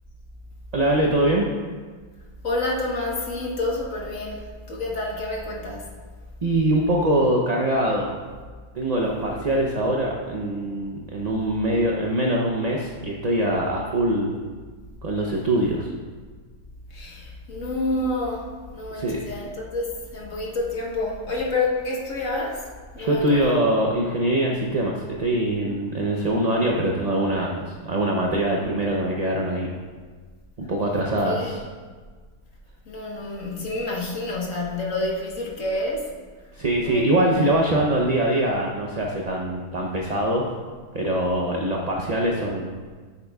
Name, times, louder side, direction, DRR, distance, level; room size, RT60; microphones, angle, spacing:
voice 1, 0.7-1.5 6.4-8.2 8.7-14.4 15.0-15.9 19.0-19.3 23.0-29.7 30.6-31.6 36.5-40.5 40.9-42.8, right 1 dB, 40° right, -1 dB, 0.6 m, -23 dB
voice 2, 2.4-5.9 16.9-22.6 22.9-23.6 31.2-31.6 32.9-36.1 36.8-37.4, left 2 dB, 60° left, -3 dB, 1.6 m, -28 dB
10.5 x 8.4 x 2.3 m, 1.5 s
omnidirectional pair, 1.6 m